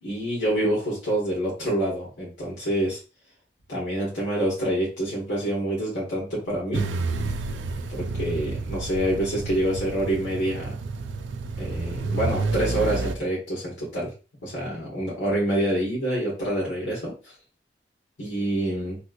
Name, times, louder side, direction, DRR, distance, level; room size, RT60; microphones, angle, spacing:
voice 1, 0.0-3.0 3.7-6.9 7.9-10.7 11.6-14.1 14.4-17.3 18.2-19.0, right 1 dB, 85° left, -6 dB, 1.6 m, -27 dB
sound 1, 6.7-13.2, right 3 dB, 80° right, 0.4 m, -30 dB
3.2 x 3.0 x 2.5 m, 0.33 s
head